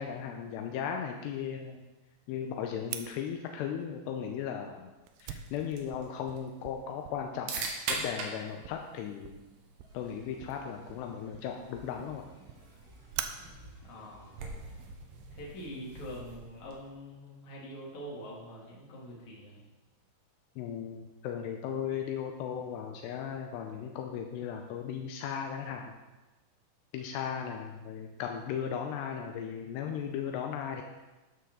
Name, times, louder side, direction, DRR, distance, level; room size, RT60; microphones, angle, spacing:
voice 1, 0.0-1.9 2.3-4.9 5.2-9.4 9.9-12.2 20.6-25.9 26.9-30.8, left 8 dB, 80° left, 3 dB, 2.5 m, -36 dB
Fire, 2.9-15.4, right 9 dB, 85° right, 2.3 m, -47 dB
sound 1, 5.1-17.0, right 4 dB, 65° right, 3.3 m, -44 dB
sound 2, 9.8-14.8, right 1 dB, 20° right, 4.3 m, -56 dB
voice 2, 13.8-14.4 15.3-19.6, equal, 40° left, -4 dB, 3.8 m, -44 dB
13.0 x 12.5 x 3.9 m, 1.1 s
omnidirectional pair, 5.7 m